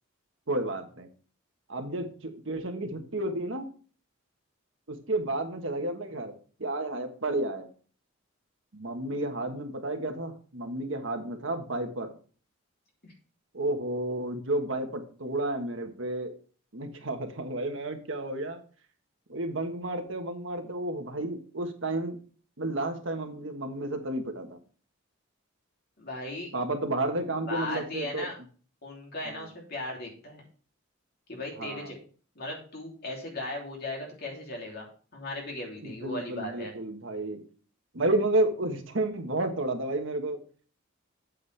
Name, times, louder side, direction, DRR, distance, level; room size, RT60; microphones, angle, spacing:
voice 1, 0.5-1.1 1.7-3.7 4.9-6.3 6.6-7.7 8.7-12.1 13.5-16.3 16.7-18.6 19.3-22.2 22.6-24.6 26.5-28.3 29.2-29.5 31.6-31.9 35.8-37.4 37.9-40.4, right 2 dB, 65° right, 5 dB, 1.4 m, -31 dB
voice 2, 26.0-26.5 27.5-28.4 28.8-30.4 31.3-32.0 32.3-36.7, left 1 dB, 50° left, -1 dB, 3.0 m, -37 dB
8.5 x 8.1 x 3.4 m, 0.40 s
head